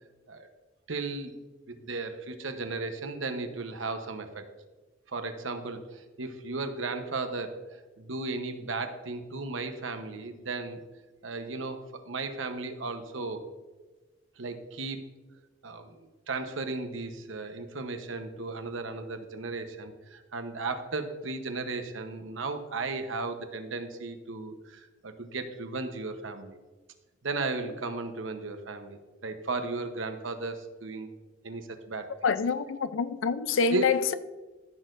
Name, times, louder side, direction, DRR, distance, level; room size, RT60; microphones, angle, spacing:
voice 1, 0.9-1.4 1.7-4.5 5.1-10.8 11.2-13.4 14.4-15.0 15.6-26.6 27.2-31.1 31.4-32.1 33.7-33.9, right 3 dB, 85° right, 1.0 m, -35 dB
voice 2, 32.2-34.1, left 5 dB, 85° left, 0.5 m, -26 dB
14.5 x 6.5 x 2.6 m
head